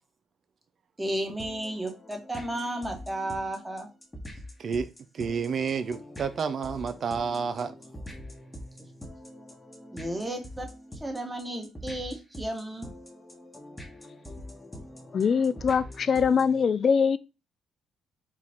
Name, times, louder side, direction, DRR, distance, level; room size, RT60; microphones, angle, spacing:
voice 1, 1.0-3.9 9.9-12.9, right 1 dB, 15° right, 1.2 m, -33 dB
sound 1, 1.4-16.6, left 1 dB, 10° left, 1.1 m, -44 dB
voice 2, 4.6-7.7, right 6 dB, 55° right, 0.4 m, -30 dB
voice 3, 15.1-17.2, left 6 dB, 50° left, 0.3 m, -23 dB
4.6 x 2.4 x 3.6 m
cardioid pair, 90°, 0 cm